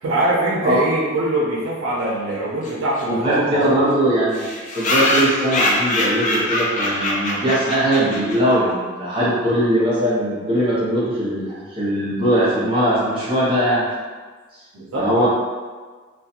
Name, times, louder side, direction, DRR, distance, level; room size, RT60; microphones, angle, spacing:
voice 1, 0.0-3.8 14.7-15.3, right 1 dB, 75° right, -5 dB, 0.5 m, -22 dB
sound 1, 2.6-2.7 3.0-3.1 3.3-3.4 3.6-3.7 4.3-8.5, left 1 dB, 35° left, 0.3 m, -22 dB
voice 2, 3.1-4.5 4.7-13.9 14.9-15.3, right 1 dB, 25° right, -9 dB, 0.8 m, -20 dB
2.3 x 2.2 x 2.8 m, 1.4 s
head